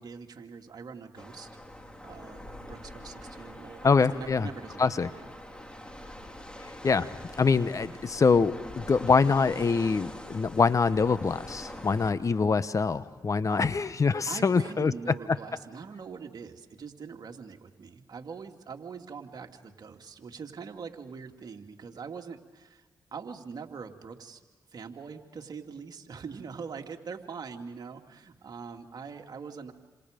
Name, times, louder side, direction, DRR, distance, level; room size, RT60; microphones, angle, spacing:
voice 1, 0.0-1.5 2.0-5.3 13.5-13.6 14.3-24.4 24.7-29.7, right 5 dB, 55° right, 3 dB, 2.5 m, -43 dB
sound 1, 1.2-12.1, left 1 dB, 10° left, 3.5 m, -44 dB
voice 2, 3.8-4.5 4.8-5.1 6.6-7.1 7.4-14.9, left 4 dB, 40° left, 14 dB, 1.0 m, -24 dB
28.5 x 27.0 x 5.2 m, 1.3 s
supercardioid pair, 55°, 8 cm